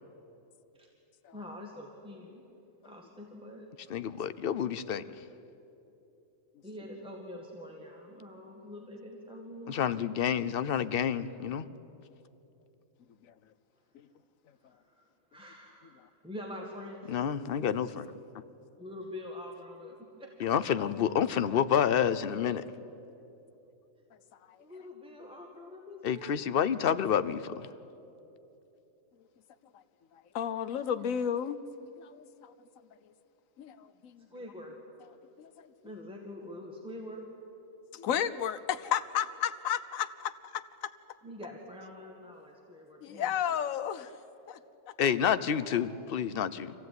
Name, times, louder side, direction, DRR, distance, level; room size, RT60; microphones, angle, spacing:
voice 1, 1.3-2.4 2.8-3.7 6.6-9.9 14.7-17.1 18.8-20.5 24.6-26.6 34.3-34.8 35.8-37.3 41.2-43.5 44.0-44.1, left 1 dB, 5° right, -1 dB, 2.0 m, -45 dB
voice 2, 3.9-5.0 9.7-11.7 17.1-18.1 20.4-22.6 26.0-27.7 45.0-46.7, left 8 dB, 50° left, 13 dB, 0.8 m, -29 dB
voice 3, 30.3-32.3 33.6-33.9 35.4-35.5 37.9-40.9 43.0-44.1 44.5-44.6, left 9 dB, 85° left, 12 dB, 1.2 m, -32 dB
25.5 x 16.5 x 9.5 m, 2.9 s
omnidirectional pair, 1.4 m